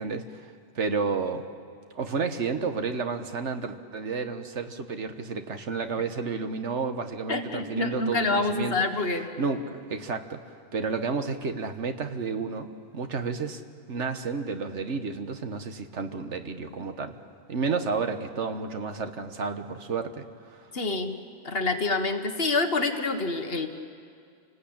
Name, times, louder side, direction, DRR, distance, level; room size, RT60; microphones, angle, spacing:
voice 1, 0.0-1.4 1.9-8.8 9.4-13.6 13.9-17.2 17.5-20.7, right 4 dB, 75° right, 8 dB, 1.6 m, -31 dB
voice 2, 7.3-9.3 20.7-21.1 21.4-23.7, left 3 dB, 55° left, 6 dB, 1.7 m, -27 dB
28.0 x 19.5 x 8.8 m, 2.3 s
omnidirectional pair, 1.2 m